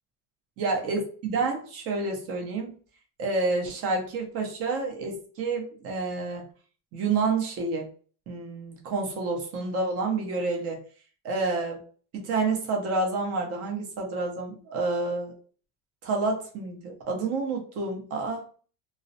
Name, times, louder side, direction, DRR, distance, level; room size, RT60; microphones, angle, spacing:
voice 1, 0.6-2.8 3.2-6.4 6.9-7.9 8.3-10.8 11.2-11.8 12.1-15.4 16.0-18.5, right 3 dB, 40° right, 2 dB, 0.7 m, -29 dB
2.3 x 2.0 x 2.6 m, 0.41 s
cardioid pair, 160°, 37 cm